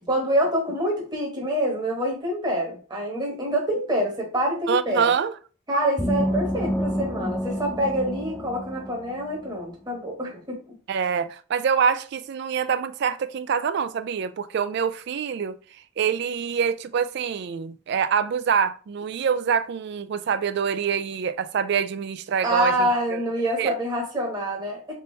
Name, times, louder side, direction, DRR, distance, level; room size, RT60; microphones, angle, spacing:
voice 1, 0.1-5.1 5.7-10.8 22.4-24.9, equal, 20° right, 1.1 m, -26 dB
voice 2, 4.7-5.3 10.9-15.6 16.0-23.2 23.6-23.7, right 7 dB, 55° right, 0.3 m, -25 dB
sound 1, 6.0-9.5, equal, 5° left, 0.5 m, -28 dB
4.0 x 3.7 x 2.7 m
head